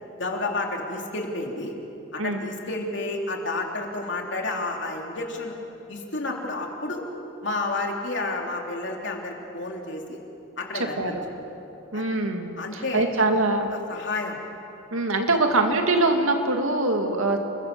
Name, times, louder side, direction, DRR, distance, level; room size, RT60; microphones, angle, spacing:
voice 1, 0.2-1.7 2.1-5.5 5.9-7.0 7.4-10.2 10.6-11.2 11.9-12.0 12.6-13.4 13.7-14.4, left 2 dB, 60° left, 1 dB, 3.3 m, -30 dB
voice 2, 10.7-11.2 11.9-13.7 14.9-17.4, right 2 dB, 85° right, 4 dB, 2.4 m, -23 dB
29.0 x 22.0 x 7.0 m, 2.9 s
head